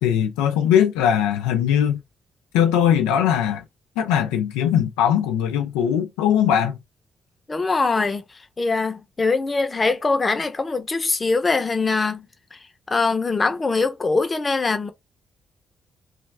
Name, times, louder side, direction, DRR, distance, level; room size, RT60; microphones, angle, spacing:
voice 1, 0.0-2.0 2.5-3.6 4.0-6.8, left 9 dB, 90° left, 0.3 m, -20 dB
voice 2, 7.5-8.2 8.6-12.3 12.9-14.9, left 3 dB, 35° left, 0.8 m, -22 dB
3.2 x 2.3 x 3.3 m
hypercardioid pair, 50°, 0 cm